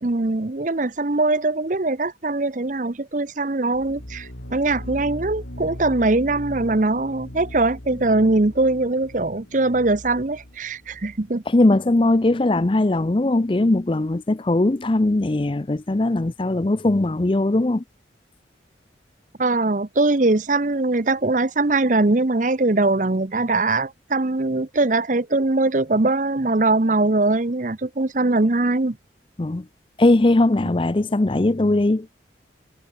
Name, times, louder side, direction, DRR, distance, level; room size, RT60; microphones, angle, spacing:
voice 1, 0.0-11.4 19.4-29.0, right 2 dB, 45° right, 0.8 m, -21 dB
sound 1, 3.7-11.4, left 1 dB, 80° left, 4.1 m, -39 dB
voice 2, 11.5-17.8 29.4-29.6 30.0-32.1, left 2 dB, 25° left, 0.5 m, -19 dB
head